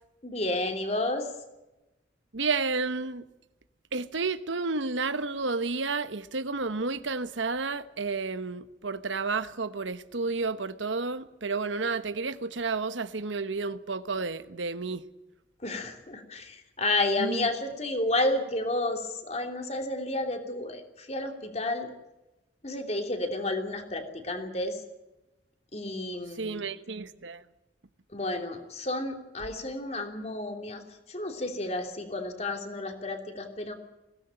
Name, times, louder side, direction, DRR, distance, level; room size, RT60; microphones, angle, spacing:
voice 1, 0.2-1.3 15.6-21.9 22.6-24.8 25.7-26.6 28.1-30.8 31.1-33.7, left 2 dB, 35° left, 3.0 m, -31 dB
voice 2, 2.3-3.2 3.9-15.1 17.2-17.5 26.4-27.4, right 4 dB, 80° right, 1.1 m, -31 dB
21.5 x 17.5 x 9.0 m
head